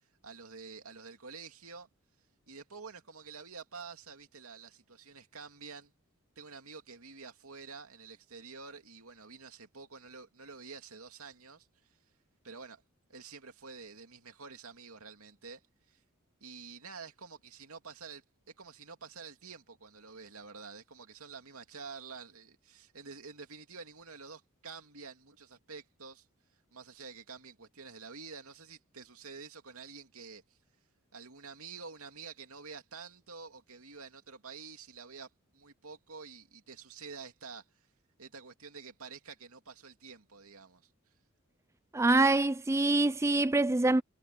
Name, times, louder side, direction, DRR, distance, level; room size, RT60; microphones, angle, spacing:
voice 1, 0.2-1.9 2.5-5.9 6.4-12.0 12.4-12.8 13.1-15.6 15.9-16.0 16.4-18.2 18.6-26.3 26.7-30.6 31.1-35.3 35.5-37.6 38.2-40.9, right 5 dB, 75° right, 2.7 m, -48 dB
voice 2, 41.9-44.0, right 2 dB, 15° right, 0.4 m, -25 dB
head